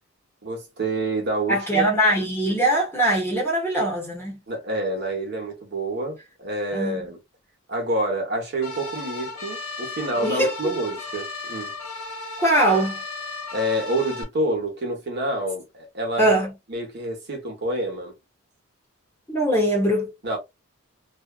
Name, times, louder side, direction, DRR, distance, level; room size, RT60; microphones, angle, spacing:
voice 1, 0.4-1.9 4.5-7.2 7.7-11.7 13.5-16.3 16.7-18.1 20.2-20.4, right 1 dB, 50° right, 1.0 m, -28 dB
voice 2, 1.5-4.4 6.7-7.1 10.2-10.8 12.4-13.0 16.2-16.5 19.3-20.1, right 1 dB, 10° left, 0.9 m, -22 dB
sound 1, 8.6-14.2, left 3 dB, 85° left, 0.8 m, -35 dB
2.6 x 2.3 x 2.3 m
head